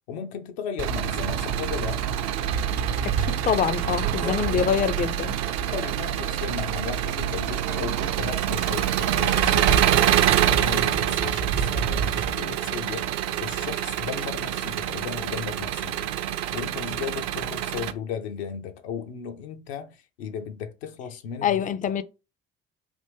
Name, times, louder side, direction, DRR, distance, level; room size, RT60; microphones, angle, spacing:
voice 1, 0.1-2.1 4.1-4.6 5.7-10.1 10.5-13.1 13.4-16.1 16.5-21.7, left 7 dB, 75° left, 0.6 m, -35 dB
Engine, 0.8-17.9, right 10 dB, 55° right, 0.5 m, -25 dB
voice 2, 3.0-5.4 21.4-22.0, left 8 dB, 25° left, 0.4 m, -25 dB
3.4 x 2.5 x 3.4 m
hypercardioid pair, 50°, 32 cm